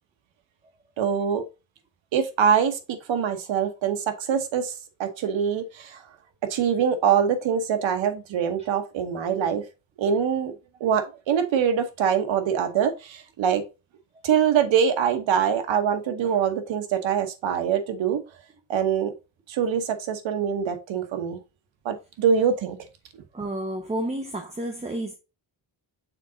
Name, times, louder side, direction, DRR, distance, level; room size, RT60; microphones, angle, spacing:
voice 1, 1.0-1.4 2.1-2.8 3.1-4.7 5.0-6.0 6.5-9.6 10.0-10.5 10.8-13.6 14.2-18.2 18.7-19.1 19.5-21.4 21.8-22.8, right 7 dB, 85° right, 1.1 m, -24 dB
voice 2, 23.3-25.1, right 1 dB, 15° right, 0.7 m, -30 dB
6.5 x 3.8 x 3.8 m
wide cardioid pair, 145°, 45 cm